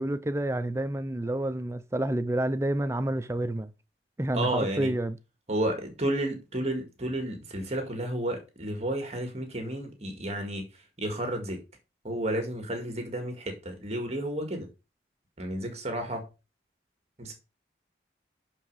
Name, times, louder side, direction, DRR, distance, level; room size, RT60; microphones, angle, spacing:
voice 1, 0.0-3.7 4.2-5.2, right 1 dB, 15° right, 0.4 m, -29 dB
voice 2, 4.3-4.9 5.5-10.6 11.0-11.6 12.0-14.7 15.4-16.3 17.2-17.3, right 1 dB, 35° right, 1.9 m, -31 dB
7.4 x 6.3 x 4.7 m
head